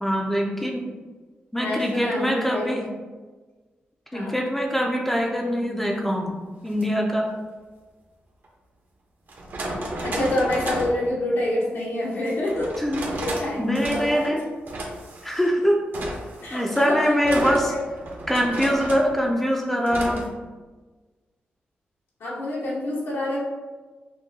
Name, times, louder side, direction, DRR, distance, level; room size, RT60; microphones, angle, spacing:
voice 1, 0.0-0.9 1.5-2.9 4.1-6.3 6.6-7.3 12.8-13.1 13.6-14.4 15.2-15.9 16.5-17.7 18.3-20.3, equal, 5° left, 0 dB, 0.4 m, -23 dB
voice 2, 1.5-2.9 4.1-4.4 10.0-14.3 16.4-17.8 22.2-23.4, left 1 dB, 90° left, -6 dB, 1.1 m, -27 dB
sound 1, 6.7-6.8 8.4-8.5 9.3-11.0 12.5-13.5 13.7-14.3 14.7-15.5 15.9-19.1 19.9-20.3, right 1 dB, 55° right, 0.7 m, -33 dB
6.0 x 2.1 x 2.7 m, 1.3 s
wide cardioid pair, 115°, 4 cm